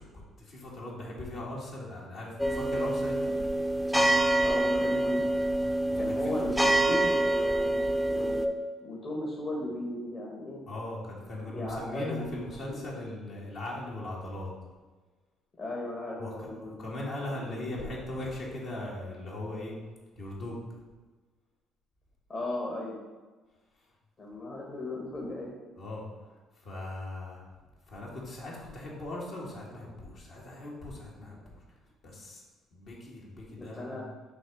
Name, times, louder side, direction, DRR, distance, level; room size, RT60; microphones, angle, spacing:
voice 1, 0.0-3.3 5.9-6.4 10.7-14.5 16.2-19.7 20.1-20.6 25.7-26.3 26.6-27.4 27.9-31.6 32.0-32.4 32.7-34.0, left 1 dB, 65° left, -4 dB, 1.7 m, -39 dB
sound 1, 2.4-8.5, right 1 dB, ahead, 0.6 m, -26 dB
voice 2, 4.4-5.4 5.9-8.4 8.8-10.6 11.4-12.8 15.6-16.7 17.3-17.8 22.3-23.0 24.2-25.5 33.6-34.0, left 1 dB, 45° left, -3 dB, 1.4 m, -37 dB
6.2 x 3.0 x 4.9 m, 1.3 s
hypercardioid pair, 60°, 0 cm